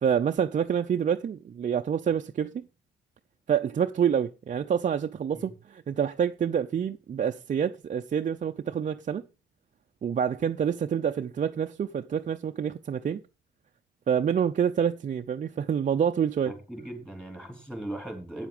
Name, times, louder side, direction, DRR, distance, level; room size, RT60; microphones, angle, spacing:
voice 1, 0.0-2.6 3.5-9.2 10.0-13.2 14.1-16.5, right 8 dB, 40° right, 0.5 m, -27 dB
voice 2, 16.5-18.5, right 1 dB, 5° left, 3.9 m, -38 dB
8.8 x 7.4 x 5.1 m
cardioid pair, 90°, 20 cm